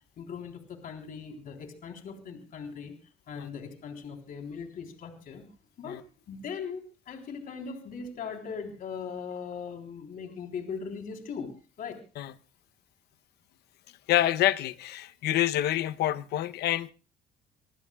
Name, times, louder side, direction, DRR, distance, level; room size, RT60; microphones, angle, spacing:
voice 1, 0.2-2.9 3.3-5.5 5.8-11.9, left 6 dB, 55° left, 3.7 m, -39 dB
voice 2, 14.1-16.9, left 14 dB, 75° left, 0.8 m, -27 dB
26.0 x 19.5 x 2.3 m
cardioid pair, 110°, 17 cm